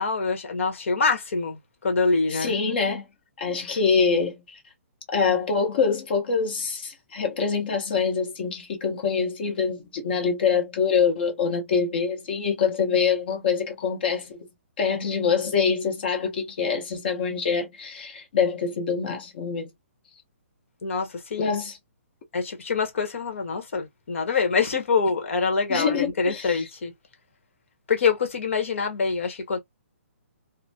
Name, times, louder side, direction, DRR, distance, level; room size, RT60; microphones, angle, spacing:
voice 1, 0.0-2.5 3.6-3.8 20.8-21.5 22.3-26.9 27.9-29.6, left 4 dB, 65° left, 1.3 m, -25 dB
voice 2, 2.3-3.0 3.4-4.6 5.1-14.5 14.8-19.7 21.4-21.7 25.7-26.6, left 5 dB, 45° left, 1.1 m, -25 dB
3.0 x 2.2 x 2.5 m
hypercardioid pair, 165°, 8 cm